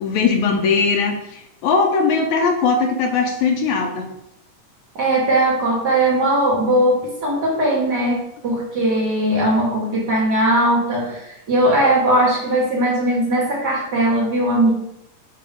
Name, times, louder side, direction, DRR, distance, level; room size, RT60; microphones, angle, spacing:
voice 1, 0.0-4.1, left 5 dB, 75° left, 2 dB, 2.0 m, -19 dB
voice 2, 4.9-14.7, right 1 dB, 50° right, -4 dB, 1.2 m, -19 dB
6.7 x 2.8 x 5.1 m, 0.82 s
omnidirectional pair, 3.5 m